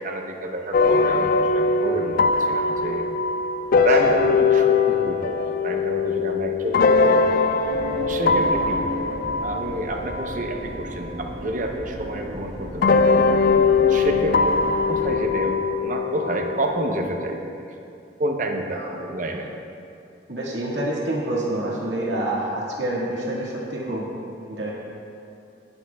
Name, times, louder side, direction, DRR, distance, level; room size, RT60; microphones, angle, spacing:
voice 1, 0.0-3.0 3.8-7.5 8.0-13.2 13.9-17.7 18.2-19.5, right 1 dB, 45° right, 3 dB, 0.8 m, -29 dB
sound 1, 0.7-11.5 12.8-17.3, left 4 dB, 50° left, 0.3 m, -21 dB
voice 2, 3.7-4.1 18.7-19.0 20.3-24.1 24.5-24.7, right 1 dB, 90° right, -6 dB, 1.9 m, -27 dB
sound 2, 7.6-15.2, equal, 60° right, 2.1 m, -35 dB
18.0 x 7.9 x 2.3 m, 2.6 s
head